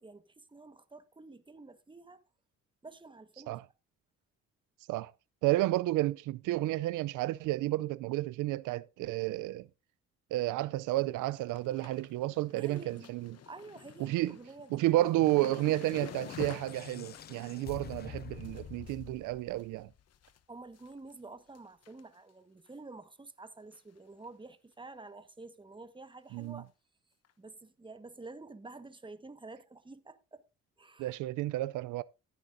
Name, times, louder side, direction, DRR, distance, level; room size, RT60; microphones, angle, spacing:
voice 1, 0.0-2.2 2.8-3.6 12.5-13.1 13.5-15.1 20.5-26.7 27.4-30.4 30.8-31.1, right 3 dB, 15° right, 1.4 m, -49 dB
voice 2, 5.4-9.7 10.3-13.4 14.0-14.4 14.7-19.9 26.3-26.6 31.0-32.0, right 16 dB, 85° right, 0.5 m, -31 dB
sound 1, 10.6-10.9 11.2-20.4 20.7-21.2 21.5-22.3 22.7-22.8 23.7-24.0 24.2-24.3 24.7-24.8 26.4-26.5 27.2-27.3, left 9 dB, 55° left, 1.0 m, -51 dB
sound 2, 14.8-20.2, left 9 dB, 35° left, 0.4 m, -47 dB
14.5 x 10.5 x 2.6 m
cardioid pair, 90°, 30 cm